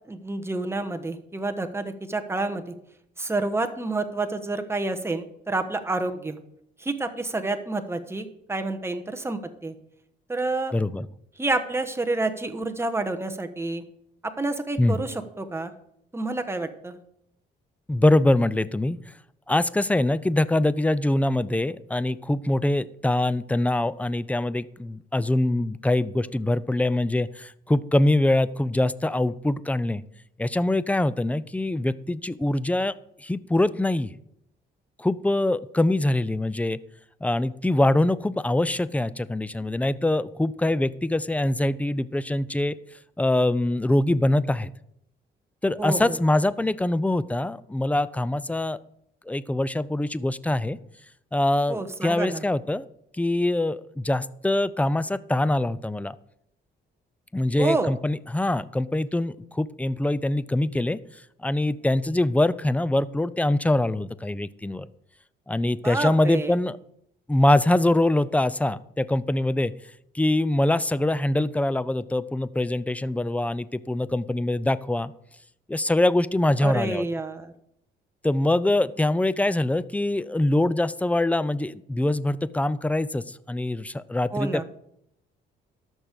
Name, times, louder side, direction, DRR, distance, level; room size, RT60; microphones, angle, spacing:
voice 1, 0.1-2.7 3.2-6.4 6.8-9.7 10.3-10.7 11.4-13.8 14.4-15.7 16.1-17.0 45.8-46.2 51.7-52.4 57.6-57.9 65.8-66.5 76.6-77.5 84.3-84.6, right 2 dB, 10° right, 6 dB, 1.2 m, -28 dB
voice 2, 10.7-11.1 14.8-15.0 17.9-19.0 19.5-30.0 30.4-32.9 33.2-34.1 35.0-36.8 37.2-42.7 43.2-44.7 45.6-48.8 49.3-50.8 51.3-52.8 53.2-56.1 57.3-61.0 61.4-64.9 65.5-66.8 67.3-69.7 70.1-75.1 75.7-77.1 78.2-84.6, left 1 dB, 5° left, 17 dB, 0.5 m, -24 dB
13.5 x 6.3 x 5.2 m, 0.73 s
cardioid pair, 90°, 20 cm